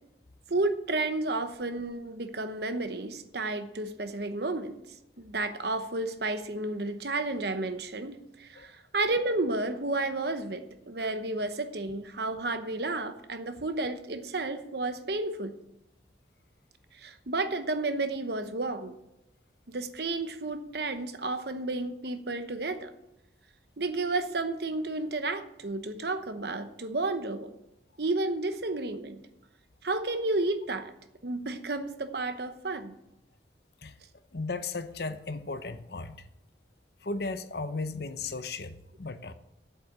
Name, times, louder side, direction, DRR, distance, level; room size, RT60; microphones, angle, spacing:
voice 1, 0.5-4.8 5.2-15.5 16.9-19.0 19.7-22.9 23.8-27.6 28.0-29.2 29.8-30.9 31.2-33.0, right 2 dB, 60° right, 9 dB, 1.0 m, -32 dB
voice 2, 34.3-36.3 37.0-39.3, left 3 dB, 60° left, 10 dB, 0.8 m, -35 dB
8.4 x 7.8 x 8.4 m, 0.86 s
head